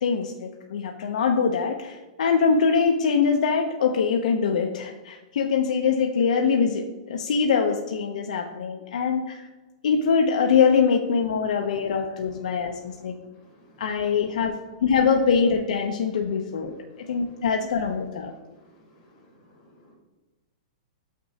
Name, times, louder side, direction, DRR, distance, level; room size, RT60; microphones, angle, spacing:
voice 1, 0.0-9.5 9.8-13.1 13.8-14.6 14.8-16.7 17.1-18.3, left 6 dB, 75° left, 3 dB, 0.6 m, -23 dB
voice 2, 17.1-17.4 18.5-18.6 19.1-19.3 19.7-19.9, left 1 dB, 25° left, -2 dB, 1.6 m, -56 dB
7.0 x 6.0 x 2.8 m, 1.2 s
hypercardioid pair, 170°, 4 cm